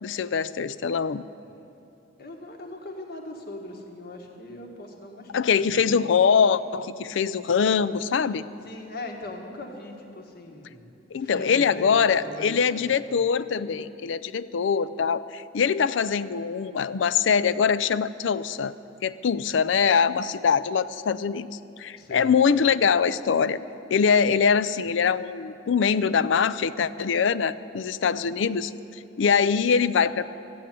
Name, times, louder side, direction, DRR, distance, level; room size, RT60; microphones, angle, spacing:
voice 1, 0.0-1.2 5.3-8.4 11.1-18.7 19.0-21.5 21.8-23.6 23.9-30.3, left 6 dB, 75° left, 15 dB, 0.4 m, -23 dB
voice 2, 2.2-6.0 8.6-10.9 11.2-13.2 22.0-22.3, left 2 dB, 55° left, 2 dB, 1.6 m, -40 dB
13.5 x 8.6 x 9.2 m, 2.8 s
head